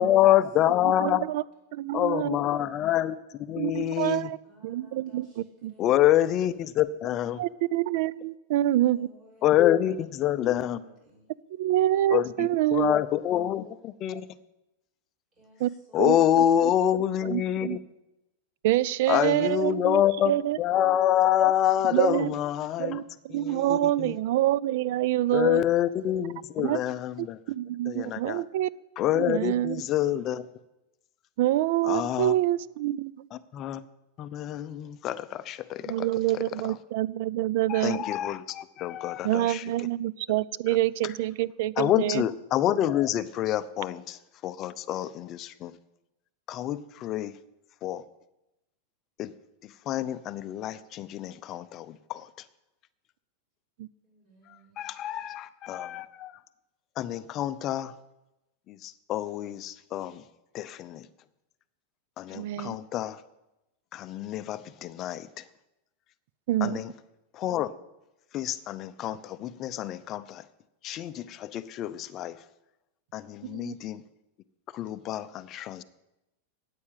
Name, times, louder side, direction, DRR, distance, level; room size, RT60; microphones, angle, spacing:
voice 1, 0.0-1.3 1.9-4.3 5.8-7.4 9.4-10.8 12.1-14.3 15.9-17.8 19.1-20.3 20.6-23.0 23.3-24.1 25.3-27.4 27.9-28.4 29.0-30.5 31.8-32.3 33.3-33.8 34.2-36.1 36.3-36.4 37.7-39.6 40.7-40.8 41.8-45.8 46.5-47.4 47.8-48.0 49.2-49.3 49.6-52.3 54.8-56.3 57.0-57.9 58.7-60.2 60.5-61.1 62.2-63.2 63.9-65.5 66.6-66.9 67.3-67.7 68.3-70.4 70.8-72.4 73.1-74.0 74.7-75.8, left 12 dB, 30° left, 0.6 m, -27 dB
voice 2, 1.0-1.4 1.7-2.4 3.6-4.4 4.6-5.7 7.4-9.1 11.5-12.9 15.6-15.7 16.0-16.2 17.3-17.8 18.6-20.6 21.9-22.3 22.8-25.6 26.6-26.8 27.2-28.7 29.1-29.8 31.4-33.3 35.8-38.0 39.2-42.2 53.8-53.9 62.3-62.7 66.5-66.8 73.4-73.7, right 14 dB, 60° right, 0.4 m, -26 dB
voice 3, 4.4-6.2 6.5-6.9 8.7-11.2 15.3-16.9 19.2-20.0 54.0-54.9, equal, 25° right, 6.0 m, -57 dB
9.6 x 8.5 x 9.0 m
supercardioid pair, 150°, 0 cm